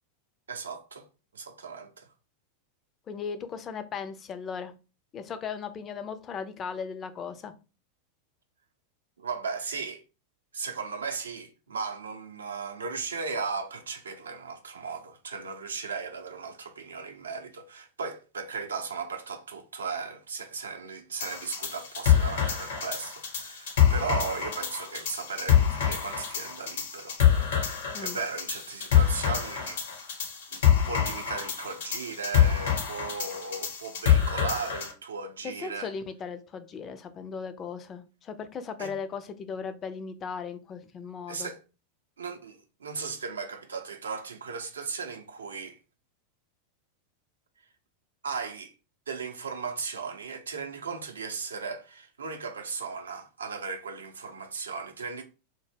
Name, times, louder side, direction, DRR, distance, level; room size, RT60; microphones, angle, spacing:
voice 1, 0.5-1.1 1.3-2.1 9.2-10.0 10.5-27.2 28.0-29.8 30.5-35.9 38.8-38.9 41.3-41.6 42.2-45.8 48.2-48.7 49.1-55.2, right 5 dB, 75° right, 0.5 m, -36 dB
voice 2, 3.1-4.7 5.1-7.5 27.9-28.2 35.4-41.5, left 6 dB, 30° left, 0.4 m, -37 dB
sound 1, 21.2-34.9, left 9 dB, 65° left, 0.7 m, -26 dB
2.1 x 2.0 x 3.2 m
figure-of-eight pair, 90°, 0 cm